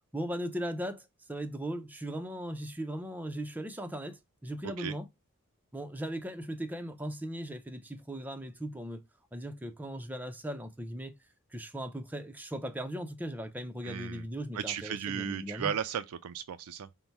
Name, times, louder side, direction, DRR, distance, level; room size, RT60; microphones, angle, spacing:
voice 1, 0.1-5.1 5.7-9.0 9.3-11.1 11.5-15.7, equal, 5° right, 0.5 m, -38 dB
voice 2, 4.6-4.9 13.8-14.2 14.5-16.9, right 8 dB, 80° right, 0.4 m, -35 dB
5.4 x 2.1 x 4.5 m
head